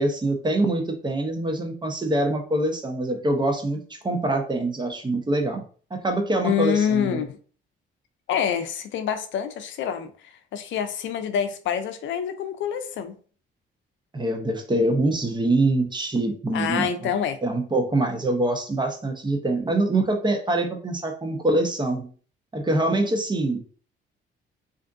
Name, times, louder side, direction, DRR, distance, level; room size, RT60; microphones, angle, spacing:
voice 1, 0.0-3.8 4.0-5.6 5.9-7.2 14.1-17.1 17.4-22.1 22.5-23.6, right 2 dB, 20° right, 0.8 m, -24 dB
voice 2, 6.4-7.4 8.3-10.1 10.5-13.1 16.5-17.4, left 8 dB, 75° left, 0.5 m, -26 dB
3.4 x 2.6 x 2.6 m
cardioid pair, 90°, 20 cm